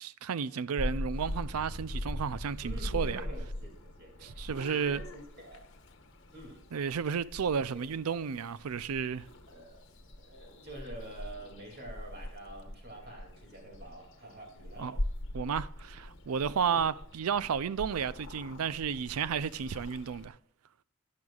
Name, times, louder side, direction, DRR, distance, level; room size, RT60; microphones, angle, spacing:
voice 1, 0.0-3.2 4.2-5.0 6.7-9.3 14.8-15.0 15.3-20.4, right 7 dB, 85° right, 0.4 m, -32 dB
Purr / Meow, 0.8-20.3, left 1 dB, 55° left, 1.1 m, -41 dB
voice 2, 2.6-5.7 6.3-6.6 7.8-8.0 9.5-14.9 16.6-16.9, right 1 dB, 50° right, 2.5 m, -48 dB
15.5 x 10.5 x 2.4 m
head